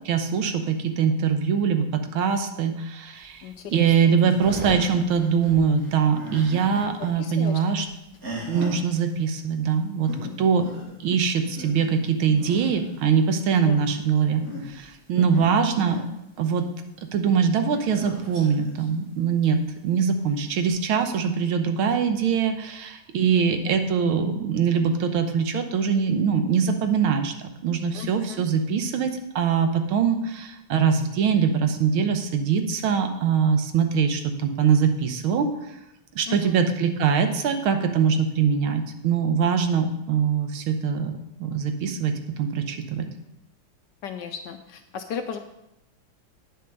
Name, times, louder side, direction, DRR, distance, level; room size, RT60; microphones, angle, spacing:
voice 1, 0.1-7.9 8.5-10.1 10.4-10.7 11.0-16.0 16.4-16.7 17.1-35.8 36.1-43.1, right 6 dB, 80° right, 7 dB, 1.7 m, -23 dB
sound 1, 3.2-7.1 7.4-8.8 9.7-9.8 10.0-10.3 10.6-10.9 11.3-13.1 14.2-14.9 15.3-16.0 17.7-18.8 19.6-19.7 20.6-20.7, right 1 dB, 45° right, 2.6 m, -37 dB
voice 2, 3.4-3.9 7.2-7.6 10.5-10.6 13.6-13.8 15.2-15.5 23.3-23.7 27.9-28.4 36.3-36.6 44.0-45.4, left 7 dB, 75° left, 7 dB, 1.1 m, -36 dB
9.1 x 6.7 x 5.2 m, 0.88 s
omnidirectional pair, 2.3 m